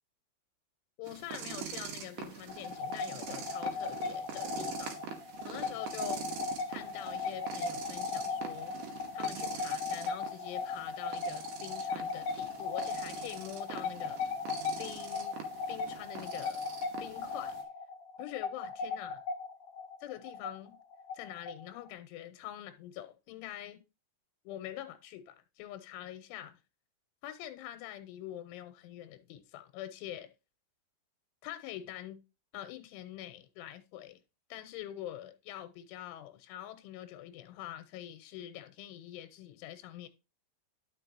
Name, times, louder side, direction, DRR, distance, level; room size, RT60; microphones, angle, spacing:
voice 1, 1.0-5.1 5.4-6.2 6.7-8.7 9.1-14.2 14.8-15.4 15.7-16.7 17.0-17.5 18.2-19.2 20.0-20.8 21.1-23.8 24.4-26.6 27.2-30.3 31.4-32.2 32.5-34.2 34.5-40.1, left 13 dB, 90° left, 3.1 m, -45 dB
sound 1, 1.0-17.6, right 7 dB, 70° right, 2.1 m, -45 dB
sound 2, 2.5-21.9, left 4 dB, 70° left, 2.4 m, -37 dB
11.0 x 5.9 x 2.7 m
omnidirectional pair, 5.5 m